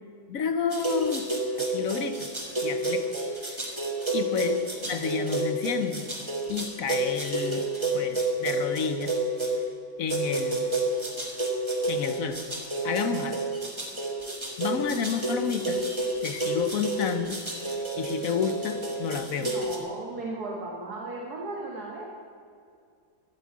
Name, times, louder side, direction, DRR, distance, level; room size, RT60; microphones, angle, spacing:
voice 1, 0.3-1.3 1.6-2.3 2.6-3.1 3.5-3.7 4.1-6.1 6.5-7.7 7.9-9.1 10.0-10.7 11.9-12.4 12.8-13.4 14.6-15.8 16.2-17.4 18.0-19.6, left 7 dB, 55° left, 9 dB, 1.1 m, -30 dB
sound 1, 0.7-9.6 10.1-19.8, right 2 dB, 15° right, 1.7 m, -30 dB
voice 2, 19.4-22.0, right 2 dB, 60° right, -2 dB, 2.1 m, -36 dB
13.0 x 8.5 x 8.4 m, 2.3 s
omnidirectional pair, 2.0 m